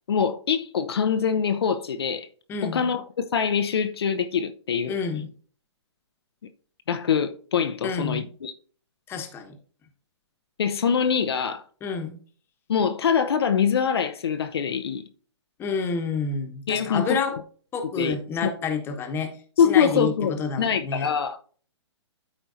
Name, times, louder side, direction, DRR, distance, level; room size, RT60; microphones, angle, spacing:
voice 1, 0.1-2.3 2.6-5.0 6.9-8.5 10.6-11.6 12.7-15.0 16.7-17.1 18.0-18.2 19.6-21.4, left 7 dB, 55° left, 0.7 m, -24 dB
voice 2, 2.5-2.9 4.9-5.3 7.8-8.3 9.1-9.6 11.8-12.2 15.6-17.4 17.7-21.1, left 5 dB, 15° left, 1.1 m, -29 dB
13.0 x 4.4 x 2.7 m
figure-of-eight pair, 125°, 15 cm